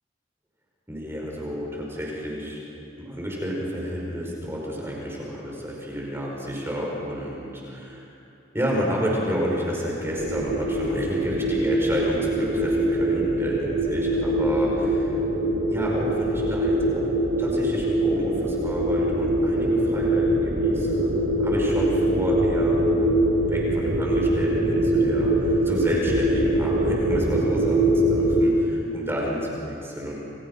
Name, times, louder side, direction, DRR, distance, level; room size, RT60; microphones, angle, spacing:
voice 1, 0.9-2.6 3.0-8.1 8.5-15.2 15.7-17.0 17.4-21.1 21.4-22.9 23.5-30.2, equal, 10° right, -3 dB, 5.1 m, -30 dB
sound 1, 10.1-28.4, right 1 dB, 45° right, 3.1 m, -23 dB
29.5 x 28.5 x 5.6 m, 2.7 s
head